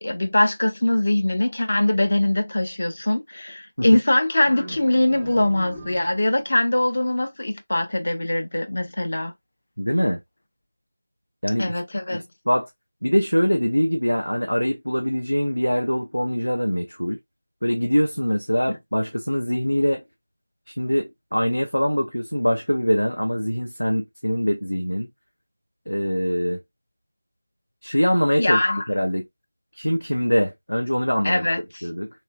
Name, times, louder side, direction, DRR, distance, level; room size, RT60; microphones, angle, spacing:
voice 1, 0.0-9.3 11.6-12.2 18.7-18.8 28.4-28.9 31.2-31.9, left 1 dB, 45° left, 0.6 m, -22 dB
sound 1, 4.5-6.5, right 2 dB, 5° right, 0.5 m, -40 dB
voice 2, 9.8-10.2 11.4-11.7 12.1-12.7 13.0-17.2 17.6-20.0 20.7-25.1 25.9-26.6 27.8-28.6 28.9-29.3 29.8-31.5 31.8-32.1, equal, 85° left, 0.6 m, -23 dB
3.0 x 2.5 x 2.3 m
figure-of-eight pair, 170°, 0 cm